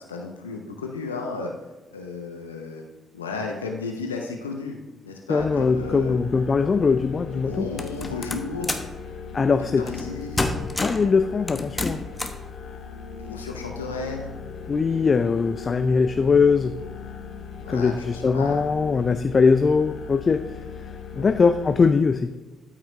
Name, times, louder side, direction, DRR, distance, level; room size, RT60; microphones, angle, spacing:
voice 1, 0.0-1.5 1.9-2.8 3.1-4.8 5.0-6.2 7.3-8.8 9.6-10.6 13.2-14.3 17.6-18.7 21.2-21.3, left 3 dB, 90° left, 2 dB, 0.6 m, -33 dB
voice 2, 5.3-7.7 9.3-9.8 10.8-12.0 14.7-16.7 17.7-20.4 21.1-22.3, left 5 dB, 40° left, 10 dB, 0.4 m, -21 dB
sound 1, 5.4-21.8, left 5 dB, 60° left, 1.3 m, -38 dB
sound 2, 7.8-8.9 9.9-10.1 10.4-11.1 11.5-12.4, left 2 dB, 20° left, 1.0 m, -28 dB
13.0 x 5.9 x 2.7 m, 1.2 s
figure-of-eight pair, 40°, 0 cm